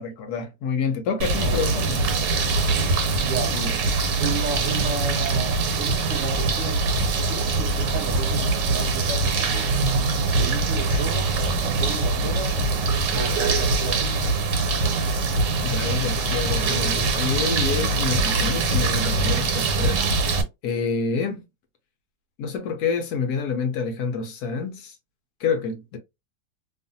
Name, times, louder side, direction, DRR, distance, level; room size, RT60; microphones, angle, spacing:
voice 1, 0.0-2.0 3.5-3.8 10.9-11.0 15.6-20.1 20.6-21.4 22.4-25.0 25.4-26.0, left 5 dB, 70° left, 1.1 m, -28 dB
sound 1, 1.2-20.4, right 3 dB, 80° right, 1.3 m, -23 dB
voice 2, 3.1-3.6 4.2-6.9 7.3-9.7 10.4-11.3 11.6-12.6 13.1-14.3, right 3 dB, 65° right, 0.8 m, -33 dB
2.8 x 2.5 x 2.5 m
omnidirectional pair, 1.8 m